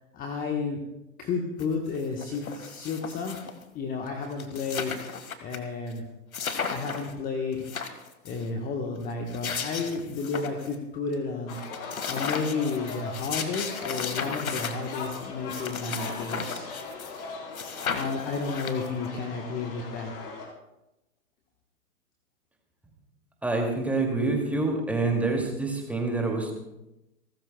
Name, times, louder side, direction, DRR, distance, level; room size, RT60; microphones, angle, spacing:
voice 1, 0.1-0.8 1.2-3.4 3.7-6.0 6.7-7.6 8.2-11.6 12.1-16.6 17.9-20.1, left 4 dB, 20° left, 2 dB, 1.3 m, -32 dB
sound 1, 1.6-1.7 1.9-3.6 4.1-4.2 4.3-5.6 5.9-6.0 6.3-7.1 7.5-8.4 9.1-10.7 11.1-11.2 11.5-17.2 17.5-19.1, left 6 dB, 75° left, 1.8 m, -35 dB
sound 2, 11.5-20.5, left 4 dB, 40° left, 4.1 m, -40 dB
voice 2, 23.4-26.6, right 3 dB, 5° right, 1 dB, 2.5 m, -27 dB
29.5 x 13.5 x 2.3 m, 0.93 s
hypercardioid pair, 125°, 43 cm